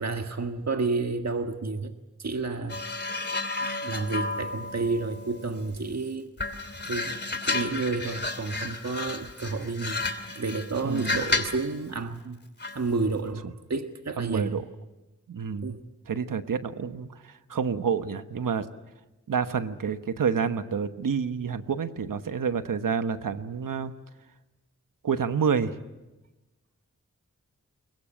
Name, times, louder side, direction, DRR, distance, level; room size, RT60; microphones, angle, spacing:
voice 1, 0.0-1.9 2.2-2.8 3.6-6.3 6.8-10.0 10.3-12.4 12.7-14.6 15.6-15.8, right 3 dB, 55° right, 6 dB, 1.5 m, -30 dB
sound 1, 2.7-5.9 6.4-11.7 12.6-12.9, left 3 dB, 35° left, 2.8 m, -32 dB
voice 2, 10.8-11.2 13.4-13.5 14.2-14.6 15.3-15.7 16.1-18.7 19.3-23.9 25.0-25.7, right 6 dB, 85° right, 10 dB, 1.2 m, -28 dB
22.5 x 21.5 x 8.9 m, 1.1 s
cardioid pair, 50°, 32 cm